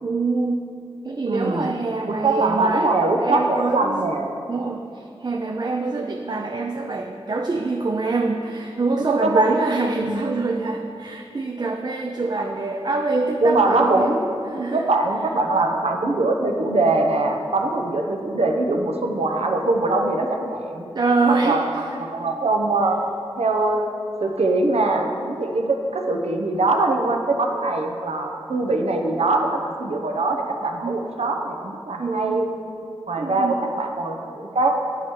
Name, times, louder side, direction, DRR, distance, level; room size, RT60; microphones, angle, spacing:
voice 1, 0.0-0.7 1.0-2.9 3.2-4.1 4.5-14.1 14.5-14.9 20.9-22.0 30.8-31.0 32.0-32.5 33.2-33.6, right 3 dB, 45° right, 2 dB, 0.4 m, -25 dB
voice 2, 1.3-1.7 2.1-4.3 9.0-9.4 10.0-10.2 12.4-12.5 13.4-14.2 14.7-20.8 21.3-21.6 22.0-23.0 23.4-23.9 24.2-32.5 33.1-34.7, right 2 dB, 80° right, 2 dB, 0.7 m, -22 dB
8.9 x 4.6 x 4.5 m, 2.7 s
wide cardioid pair, 50°, 10 cm